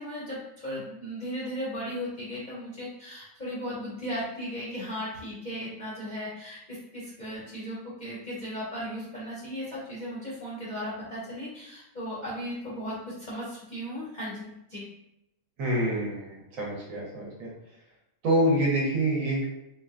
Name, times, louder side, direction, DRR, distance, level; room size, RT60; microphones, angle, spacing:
voice 1, 0.0-14.8, equal, 45° left, -8 dB, 0.6 m, -36 dB
voice 2, 15.6-17.5 18.2-19.5, right 1 dB, 65° right, -3 dB, 1.2 m, -26 dB
3.9 x 2.1 x 2.4 m, 0.86 s
omnidirectional pair, 1.6 m